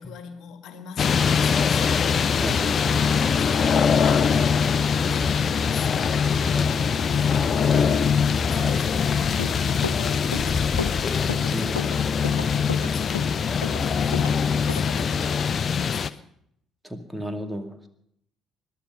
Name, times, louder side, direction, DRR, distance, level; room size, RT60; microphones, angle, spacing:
voice 1, 0.0-2.0 3.4-13.5 13.8-16.3, left 7 dB, 60° left, 1.8 m, -41 dB
sound 1, 1.0-16.1, left 6 dB, 45° left, 0.7 m, -22 dB
voice 2, 2.4-2.8 6.6-6.7 8.6-8.7 11.5-11.8 16.8-17.9, equal, 5° right, 2.2 m, -33 dB
sound 2, 2.5-7.8, right 4 dB, 75° right, 4.7 m, -46 dB
Run, 9.2-14.3 14.7-14.9, left 5 dB, 85° left, 0.7 m, -33 dB
21.0 x 12.0 x 5.6 m
figure-of-eight pair, 50°, 0 cm